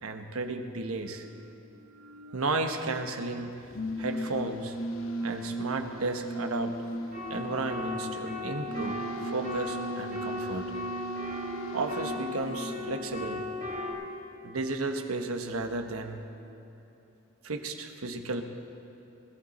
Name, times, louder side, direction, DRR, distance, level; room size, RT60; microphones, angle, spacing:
voice 1, 0.0-3.6 4.0-4.8 5.2-6.8 7.3-10.7 11.7-13.4 14.4-16.2 17.4-18.4, right 3 dB, 90° right, 6 dB, 1.0 m, -33 dB
sound 1, 3.6-14.0, right 1 dB, 75° left, 1.0 m, -38 dB
sound 2, 7.1-13.9, left 2 dB, 40° right, 2.4 m, -37 dB
21.0 x 11.5 x 4.2 m, 2.9 s
head